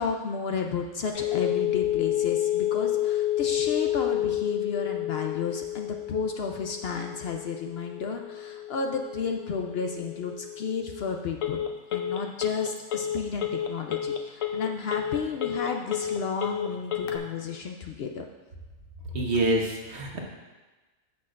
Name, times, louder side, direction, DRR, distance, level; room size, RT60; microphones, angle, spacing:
voice 1, 0.0-11.6 11.9-18.3, left 5 dB, 60° left, 3 dB, 0.8 m, -32 dB
Telephone, 1.1-17.2, left 11 dB, 85° left, 1.1 m, -30 dB
voice 2, 19.1-20.2, right 1 dB, 60° right, -1 dB, 1.4 m, -26 dB
14.0 x 6.3 x 2.5 m, 1.2 s
omnidirectional pair, 1.3 m